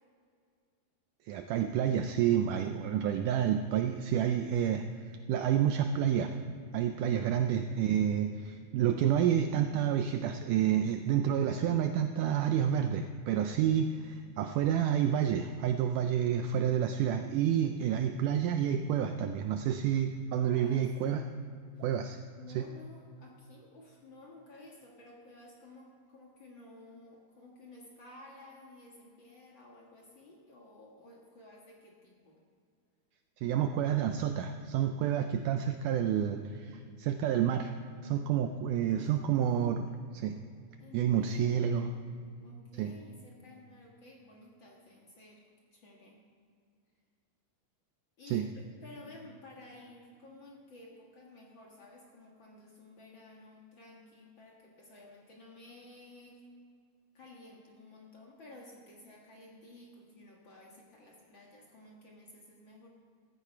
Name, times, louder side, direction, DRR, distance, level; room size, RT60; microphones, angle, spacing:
voice 1, 1.3-6.3 6.7-21.3 21.8-22.2 22.5-22.6 33.4-37.7 38.0-40.4 40.9-41.9 42.8-42.9 48.3-48.5, right 9 dB, 85° right, 7 dB, 1.8 m, -29 dB
voice 2, 17.5-18.0 20.4-20.8 21.7-21.8 22.3-32.4 38.9-39.4 40.8-42.1 42.4-45.4 45.7-46.2 48.2-56.4 57.1-62.9, left 2 dB, 50° left, -2 dB, 1.6 m, -54 dB
14.0 x 13.5 x 4.5 m, 2.3 s
omnidirectional pair, 4.2 m